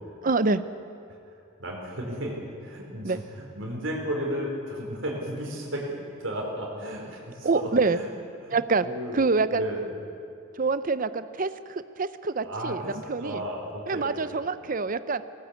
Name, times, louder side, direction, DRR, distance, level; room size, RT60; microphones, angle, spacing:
voice 1, 0.2-0.6 3.0-3.2 7.4-8.0 8.5-8.8 9.1-9.6 10.5-12.8 13.1-13.4 13.9-15.2, right 4 dB, 45° right, 13 dB, 0.7 m, -26 dB
voice 2, 1.6-5.9 6.2-8.1 8.4-8.6 8.8-9.2 9.5-9.9 12.4-14.4, equal, 70° right, -1 dB, 4.4 m, -34 dB
18.0 x 18.0 x 8.3 m, 2.5 s
head